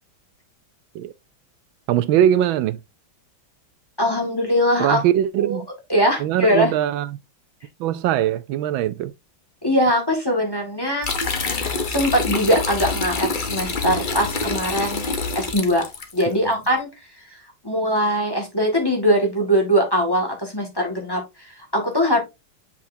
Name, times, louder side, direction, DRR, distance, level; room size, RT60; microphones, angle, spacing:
voice 1, 1.9-2.8 4.8-5.7 6.2-7.1 7.8-9.1 16.3-16.5, right 11 dB, 80° right, 1.3 m, -21 dB
voice 2, 4.0-5.0 5.4-5.6 5.9-6.7 9.6-11.1 11.9-15.0 15.3-15.8 16.1-16.9 17.3-22.2, equal, 10° left, 1.9 m, -21 dB
sound 1, 11.0-16.2, left 3 dB, 35° left, 0.8 m, -26 dB
7.3 x 5.7 x 2.7 m
omnidirectional pair, 2.2 m